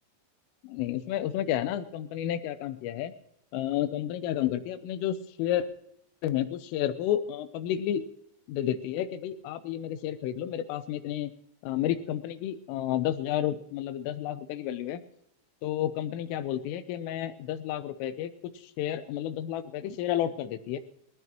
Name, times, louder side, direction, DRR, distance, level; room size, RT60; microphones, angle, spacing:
voice 1, 0.6-3.1 3.5-5.7 6.2-8.0 8.5-11.3 11.6-15.0 15.6-20.8, left 11 dB, 85° left, 11 dB, 3.5 m, -31 dB
19.5 x 19.0 x 3.0 m, 0.75 s
omnidirectional pair, 5.6 m